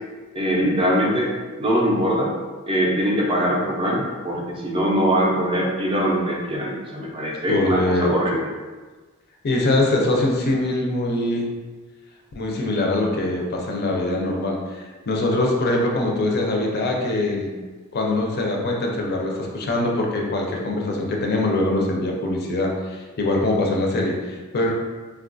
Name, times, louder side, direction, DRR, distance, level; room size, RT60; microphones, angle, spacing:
voice 1, 0.3-1.3 1.6-2.3 2.7-8.5, equal, 25° right, -2 dB, 0.4 m, -22 dB
voice 2, 7.5-8.1 9.4-11.5 12.3-14.8 15.1-17.5 17.9-24.7, left 2 dB, 50° left, 0 dB, 0.4 m, -23 dB
3.4 x 2.3 x 2.5 m, 1.3 s
head